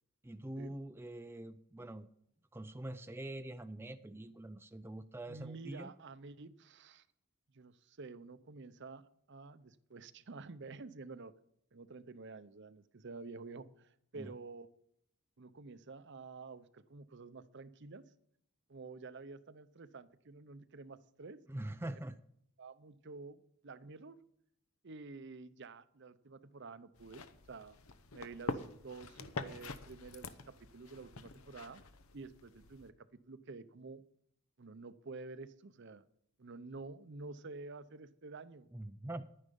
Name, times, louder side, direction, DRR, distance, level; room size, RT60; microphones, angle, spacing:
voice 1, 0.2-2.1 2.5-5.9 14.2-14.3 21.5-22.2 38.7-39.3, right 1 dB, 10° right, 9 dB, 0.4 m, -44 dB
voice 2, 5.3-7.1 7.5-11.3 11.7-14.9 15.4-18.0 18.7-21.4 22.6-24.2 24.8-27.8 28.1-31.8 32.1-34.0 34.6-36.1 36.4-38.7, right 3 dB, 55° right, 14 dB, 0.7 m, -50 dB
sound 1, 26.9-32.9, left 3 dB, 75° left, 0.9 m, -46 dB
11.0 x 9.9 x 5.3 m, 0.71 s
head